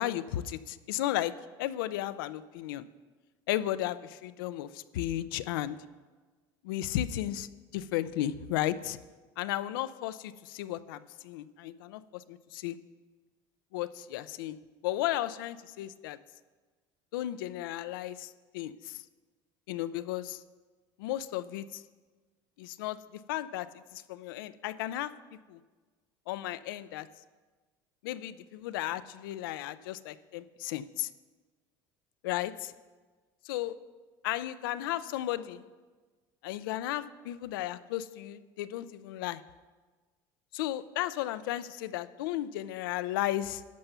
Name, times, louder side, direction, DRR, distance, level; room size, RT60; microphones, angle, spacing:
voice 1, 0.0-2.9 3.5-5.8 6.6-9.0 9.4-12.8 13.7-14.6 14.8-16.2 17.1-19.0 19.7-20.4 21.0-21.8 22.6-23.0 23.3-25.1 25.5-25.6 26.3-27.1 28.0-31.1 32.2-32.7 33.4-33.7 34.2-35.6 36.4-39.4 40.5-43.6, left 13 dB, 90° left, 14 dB, 0.4 m, -34 dB
11.5 x 5.6 x 6.8 m, 1.4 s
supercardioid pair, 100°, 11 cm